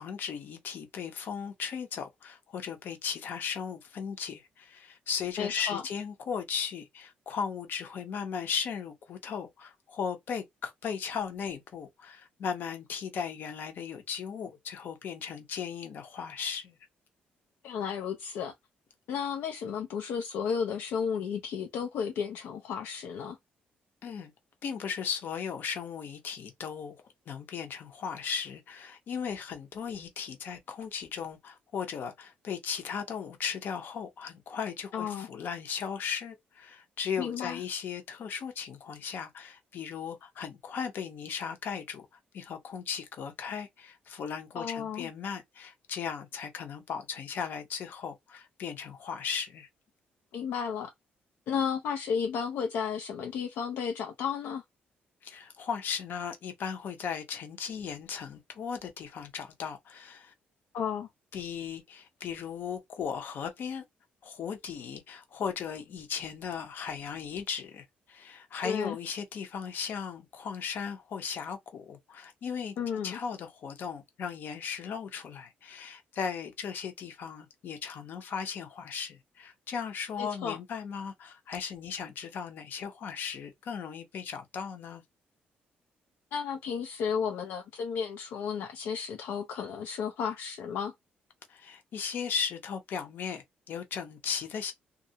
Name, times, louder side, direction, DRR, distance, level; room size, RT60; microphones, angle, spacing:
voice 1, 0.0-16.8 24.0-24.3 24.6-27.0 27.3-42.1 42.3-49.7 55.2-60.3 61.3-63.8 64.2-72.7 73.0-85.0 91.5-94.7, left 6 dB, 65° left, 0.7 m, -37 dB
voice 2, 5.4-5.8 17.6-18.5 19.1-23.4 34.9-35.3 37.2-37.6 44.5-45.1 50.3-50.9 51.5-54.6 60.7-61.1 68.6-69.0 72.8-73.2 80.2-80.6 86.3-90.9, left 7 dB, 85° left, 0.4 m, -33 dB
2.4 x 2.0 x 2.7 m
cardioid pair, 105°, 4 cm